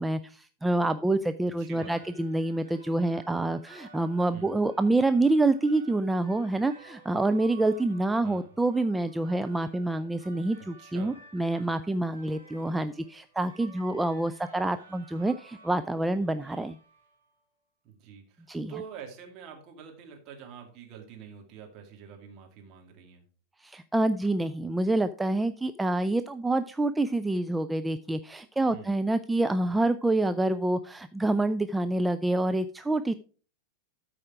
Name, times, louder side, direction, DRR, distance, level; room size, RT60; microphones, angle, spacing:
voice 1, 0.0-16.8 18.5-18.7 23.6-33.1, right 2 dB, 5° right, 9 dB, 0.4 m, -27 dB
voice 2, 1.6-2.1 4.3-4.6 8.2-8.5 10.8-11.2 17.8-23.2 28.7-29.0, right 7 dB, 40° right, 2 dB, 2.6 m, -46 dB
sound 1, 1.6-17.4, right 3 dB, 85° right, 3.5 m, -54 dB
13.0 x 4.9 x 4.7 m, 0.39 s
figure-of-eight pair, 90°, 0 cm